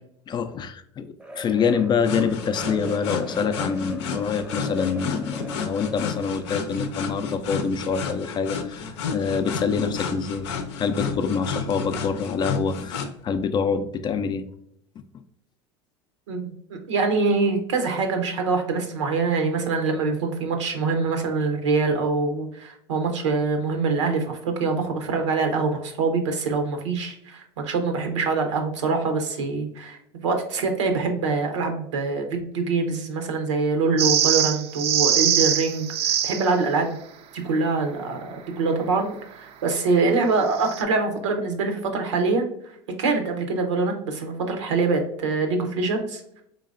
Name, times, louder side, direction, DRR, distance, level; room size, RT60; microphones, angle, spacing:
voice 1, 0.3-14.5, left 6 dB, 30° left, 10 dB, 0.4 m, -26 dB
sound 1, 1.2-6.6, right 1 dB, 5° right, 0.6 m, -40 dB
sound 2, 2.0-13.1, left 5 dB, 80° left, 0.6 m, -31 dB
voice 2, 16.3-37.0 37.3-42.4 43.0-46.4, right 4 dB, 90° right, 5 dB, 0.8 m, -24 dB
sound 3, 34.0-36.5 40.5-40.8, right 9 dB, 45° right, 0.4 m, -22 dB
3.8 x 3.2 x 2.5 m, 0.73 s
hypercardioid pair, 90°, 15 cm